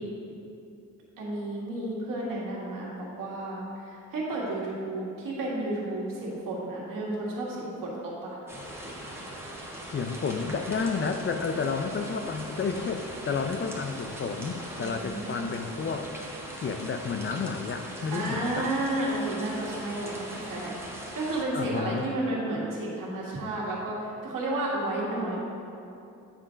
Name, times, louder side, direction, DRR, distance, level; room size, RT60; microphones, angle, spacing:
voice 1, 1.2-8.4 14.8-15.6 18.1-25.4, right 1 dB, 75° right, -4 dB, 1.8 m, -32 dB
sound 1, 8.5-21.4, right 1 dB, 5° right, 1.3 m, -40 dB
voice 2, 9.9-16.1 16.6-18.7 21.5-22.1, left 5 dB, 35° left, 7 dB, 0.5 m, -31 dB
8.8 x 3.7 x 5.1 m, 2.7 s
cardioid pair, 80°, 33 cm